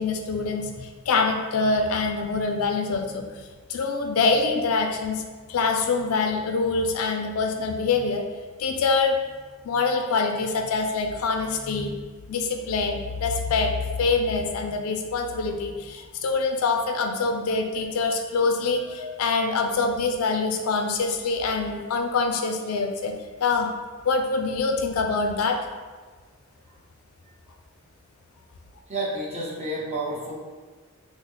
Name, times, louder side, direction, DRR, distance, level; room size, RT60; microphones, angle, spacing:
voice 1, 0.0-3.3 3.7-5.2 5.5-8.2 8.6-9.2 9.6-11.9 12.3-23.1 23.4-23.7 24.1-25.6, left 4 dB, 80° left, 4 dB, 0.4 m, -25 dB
voice 2, 28.9-30.3, right 1 dB, 30° right, -5 dB, 0.8 m, -30 dB
3.8 x 2.1 x 3.3 m, 1.4 s
head